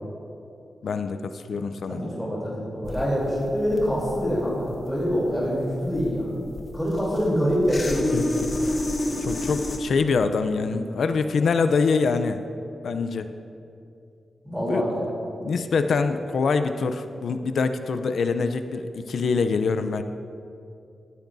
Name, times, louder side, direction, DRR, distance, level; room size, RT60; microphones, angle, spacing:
voice 1, 0.8-2.0 8.1-8.3 9.2-12.4 12.8-13.3 14.7-14.8 15.4-20.0, left 4 dB, 70° left, 9 dB, 0.5 m, -24 dB
voice 2, 1.9-6.4 6.7-8.6 14.4-15.0, equal, ahead, -7 dB, 3.4 m, -25 dB
sound 1, 2.8-9.8, left 1 dB, 30° left, 1.1 m, -30 dB
18.0 x 13.5 x 2.7 m, 2.6 s
wide cardioid pair, 135°, 0 cm